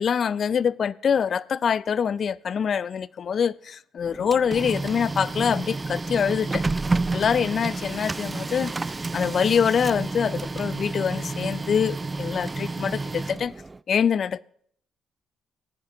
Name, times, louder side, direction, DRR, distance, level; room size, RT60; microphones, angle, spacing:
voice 1, 0.0-6.6 7.1-8.7 9.1-13.5 13.9-14.4, left 7 dB, 50° left, 0.4 m, -24 dB
Printer, 4.0-13.8, right 3 dB, 25° right, 0.4 m, -30 dB
16.0 x 10.5 x 3.5 m
cardioid pair, 90°, 0 cm